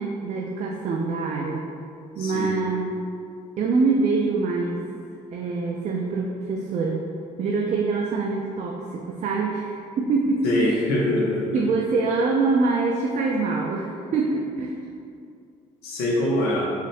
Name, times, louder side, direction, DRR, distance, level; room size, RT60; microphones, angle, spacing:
voice 1, 0.0-1.7 2.2-2.9 3.6-4.8 5.3-7.0 7.4-10.7 11.5-14.8, right 4 dB, 45° right, -1 dB, 0.4 m, -24 dB
voice 2, 2.2-2.5 10.4-11.6 15.8-16.7, left 1 dB, 70° left, -3 dB, 0.8 m, -24 dB
3.9 x 2.4 x 3.2 m, 2.4 s
hypercardioid pair, 55°, 17 cm